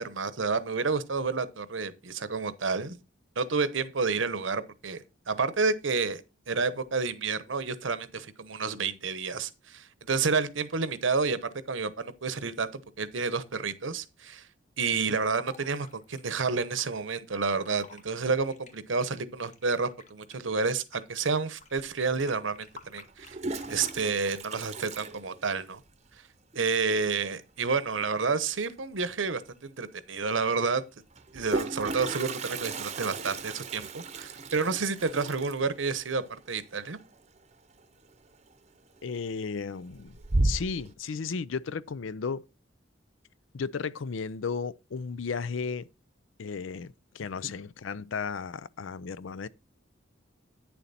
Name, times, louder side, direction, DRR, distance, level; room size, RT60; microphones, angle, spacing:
voice 1, 0.0-3.0 3.4-6.2 6.5-14.5 14.8-23.4 23.7-25.8 26.5-30.8 31.3-37.0 47.4-47.5, right 4 dB, 80° right, 0.9 m, -30 dB
Fill (with liquid), 14.8-16.9 17.5-18.0 18.4-21.2 21.6-24.0 24.5-24.9, left 4 dB, 35° left, 1.2 m, -52 dB
Toilet flush, 21.8-21.9 23.1-25.9 26.2-26.3 26.5-26.6 26.9-27.3 29.0-29.1 29.5-29.6 31.1-37.8 38.1-38.5 39.0-39.5 39.9-40.9, right 2 dB, 35° right, 0.8 m, -34 dB
voice 2, 39.0-40.2 40.4-42.4 43.5-45.9 46.4-49.5, left 5 dB, 85° left, 0.5 m, -34 dB
9.3 x 7.1 x 4.1 m
head